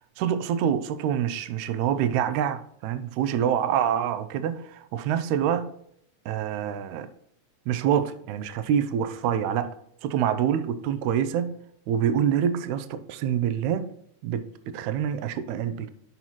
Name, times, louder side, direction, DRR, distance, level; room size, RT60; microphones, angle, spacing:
voice 1, 0.2-5.7 6.3-7.1 7.7-9.7 10.0-11.5 11.9-13.9 14.2-15.9, right 9 dB, 80° right, 1.8 m, -26 dB
9.0 x 5.6 x 3.0 m
omnidirectional pair, 3.7 m